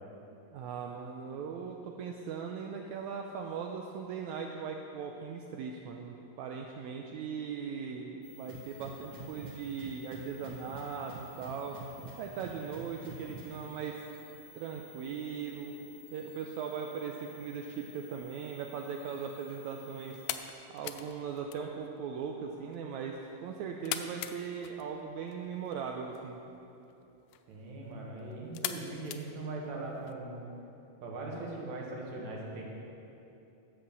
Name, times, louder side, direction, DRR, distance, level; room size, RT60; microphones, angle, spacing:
voice 1, 0.5-11.8 12.2-14.0 14.6-15.8 16.1-20.2 20.7-26.4, right 6 dB, 80° right, 2 dB, 1.8 m, -39 dB
sound 1, 8.2-20.3, left 1 dB, 35° left, 1.9 m, -55 dB
sound 2, 8.5-13.6, right 4 dB, 35° right, 2.2 m, -46 dB
sound 3, 18.7-30.1, left 11 dB, 80° left, 2.1 m, -44 dB
voice 2, 27.5-30.4 31.0-32.6, right 2 dB, 60° right, -2 dB, 2.9 m, -40 dB
11.0 x 7.8 x 6.9 m, 2.9 s
omnidirectional pair, 3.8 m